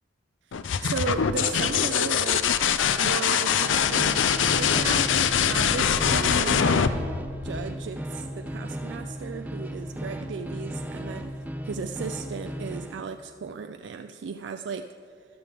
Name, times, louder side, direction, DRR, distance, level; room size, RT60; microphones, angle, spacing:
sound 1, 0.5-8.1 9.9-10.4, left 7 dB, 85° left, 0.5 m, -23 dB
voice 1, 0.8-2.5 2.9-5.2 5.5-7.1 7.4-11.4 11.6-15.3, right 5 dB, 70° right, 8 dB, 0.4 m, -35 dB
sound 2, 3.5-13.0, equal, 10° right, 0.5 m, -36 dB
13.0 x 11.5 x 3.5 m, 2.4 s
head